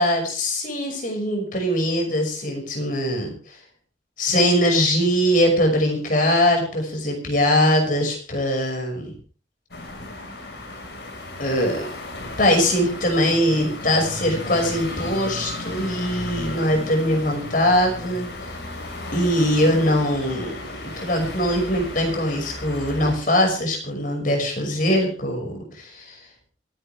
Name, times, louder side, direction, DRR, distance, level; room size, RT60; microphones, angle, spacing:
voice 1, 0.0-3.3 4.2-9.1 11.4-11.9 12.2-18.3 19.1-26.2, equal, 50° left, 2 dB, 5.9 m, -22 dB
sound 1, 9.7-23.2, left 2 dB, 65° left, 5.2 m, -34 dB
27.0 x 10.5 x 3.5 m, 0.38 s
head